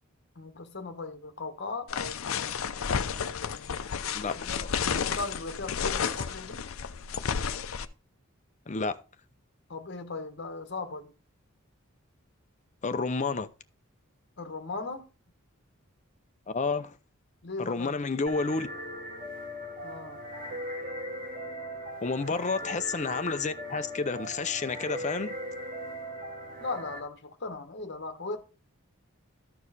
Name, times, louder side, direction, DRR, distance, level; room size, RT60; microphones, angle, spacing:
voice 1, 0.3-2.6 3.1-3.9 4.3-6.7 9.7-11.1 14.4-15.1 17.4-18.0 19.8-20.5 22.3-22.5 26.6-28.4, left 3 dB, 55° left, 1.2 m, -38 dB
sound 1, 1.9-7.8, left 6 dB, 85° left, 0.6 m, -32 dB
voice 2, 4.1-4.7 8.7-9.0 12.8-13.5 16.5-17.0 17.6-18.7 22.0-25.3, left 4 dB, 35° left, 0.6 m, -30 dB
sound 2, 18.3-27.0, equal, 45° right, 1.9 m, -39 dB
13.5 x 4.7 x 4.1 m
head